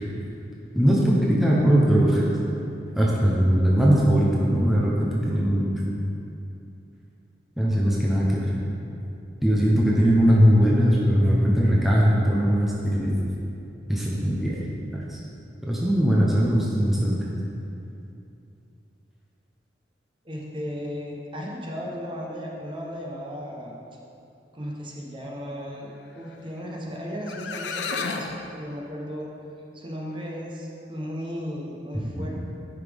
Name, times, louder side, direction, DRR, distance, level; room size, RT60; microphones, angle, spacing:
voice 1, 0.7-2.2 2.9-5.7 7.6-8.5 9.4-13.2 13.9-14.6 14.9-15.2 15.6-17.2 32.1-32.3, equal, ahead, -5 dB, 0.8 m, -20 dB
voice 2, 20.2-23.8 24.5-29.3 29.7-32.4, equal, 30° right, -3 dB, 1.0 m, -35 dB
sound 1, 26.9-27.0 27.3-28.4, left 4 dB, 80° left, 0.5 m, -31 dB
9.8 x 5.6 x 3.5 m, 2.7 s
head